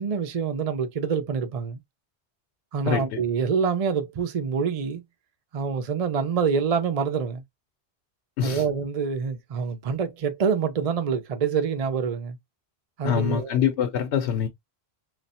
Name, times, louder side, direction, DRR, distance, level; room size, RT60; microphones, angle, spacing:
voice 1, 0.0-1.8 2.7-5.0 5.5-7.4 8.4-12.4 13.0-13.6, right 6 dB, 45° right, 0.5 m, -26 dB
voice 2, 2.9-3.2 8.4-8.6 13.0-14.5, left 9 dB, 85° left, 0.9 m, -25 dB
3.2 x 2.4 x 4.1 m
omnidirectional pair, 1.1 m